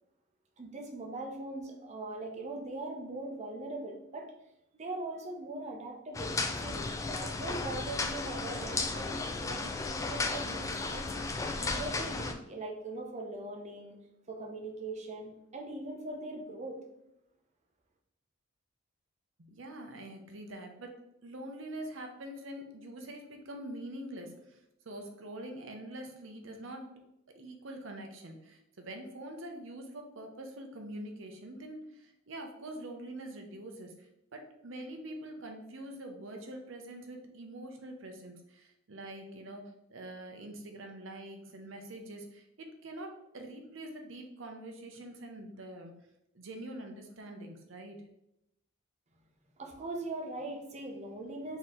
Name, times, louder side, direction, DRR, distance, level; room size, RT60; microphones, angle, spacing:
voice 1, 0.6-4.3 4.8-6.3 6.6-11.3 11.6-14.0 14.3-16.8 49.6-51.6, right 2 dB, 35° right, 1 dB, 0.7 m, -41 dB
sound 1, 6.1-12.3, left 3 dB, 15° left, 0.3 m, -34 dB
voice 2, 19.4-21.0 21.2-24.6 24.8-26.9 27.3-39.6 39.9-45.9 46.3-48.0, right 1 dB, 65° right, 4 dB, 0.8 m, -45 dB
4.3 x 3.0 x 3.7 m, 0.83 s
head